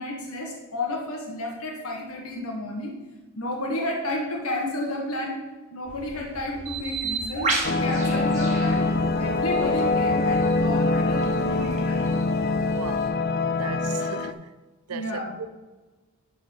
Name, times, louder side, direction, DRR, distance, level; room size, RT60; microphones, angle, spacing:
voice 1, 0.0-3.0 3.4-5.4 5.7-8.8 9.2-12.1 14.9-15.4, left 1 dB, 80° left, 1.5 m, -31 dB
sound 1, 5.9-11.8, right 1 dB, 5° right, 2.2 m, -44 dB
Bird, 6.7-13.1, right 3 dB, 30° right, 1.5 m, -34 dB
sound 2, 7.6-14.3, left 3 dB, 45° left, 0.4 m, -24 dB
voice 2, 12.6-14.6 14.9-15.5, right 6 dB, 90° right, 0.5 m, -37 dB
11.5 x 4.2 x 5.4 m
head